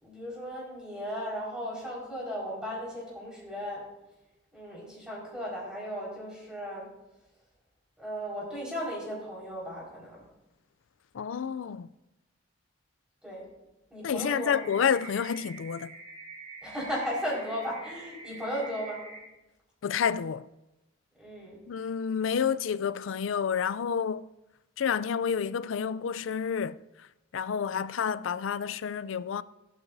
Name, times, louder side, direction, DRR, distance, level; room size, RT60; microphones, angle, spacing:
voice 1, 0.0-3.8 4.5-6.9 8.0-10.2 13.2-13.5 13.9-14.7 16.6-19.0 21.2-21.6, equal, 5° right, 4.8 m, -36 dB
voice 2, 11.1-11.9 14.0-15.9 19.8-20.4 21.7-24.3 24.8-26.8 27.3-29.4, left 7 dB, 80° left, 0.4 m, -29 dB
sound 1, 14.2-19.2, right 2 dB, 30° right, 3.8 m, -45 dB
15.0 x 11.5 x 2.7 m
head